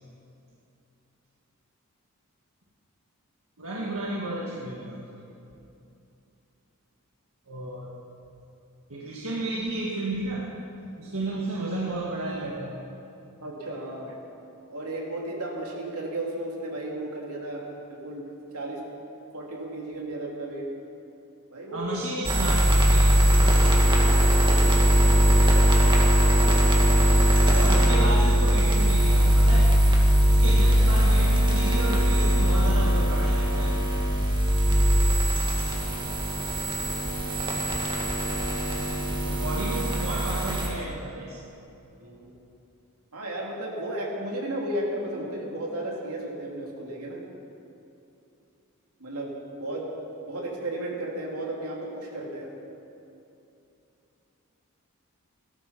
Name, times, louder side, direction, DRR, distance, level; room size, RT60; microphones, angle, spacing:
voice 1, 3.6-5.2 7.5-7.9 8.9-10.5 11.0-12.8 21.7-23.7 27.5-29.7 30.3-33.8 39.2-41.5, right 1 dB, 70° right, -4 dB, 1.7 m, -32 dB
voice 2, 13.4-14.2 14.7-18.3 18.5-18.8 19.3-20.7 21.5-21.9 24.0-25.4 42.0-42.4 43.1-47.2 49.0-49.9 50.3-52.5, right 1 dB, 85° right, -2 dB, 3.0 m, -34 dB
sound 1, 22.2-40.7, equal, 20° right, 1.9 m, -20 dB
17.5 x 13.0 x 5.8 m, 2.8 s
head